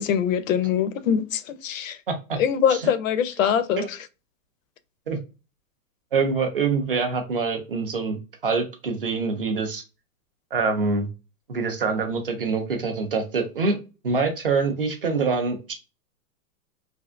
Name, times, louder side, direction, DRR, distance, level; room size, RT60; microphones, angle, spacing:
voice 1, 0.0-2.0 2.4-4.0, left 8 dB, 55° left, 0.5 m, -23 dB
voice 2, 2.1-2.4 2.7-2.9 3.8-3.9 5.1-5.2 6.1-8.2 8.4-9.8 10.5-11.1 11.5-13.8 14.0-15.7, right 4 dB, 40° right, 0.4 m, -25 dB
3.3 x 2.5 x 2.4 m
supercardioid pair, 175°, 49 cm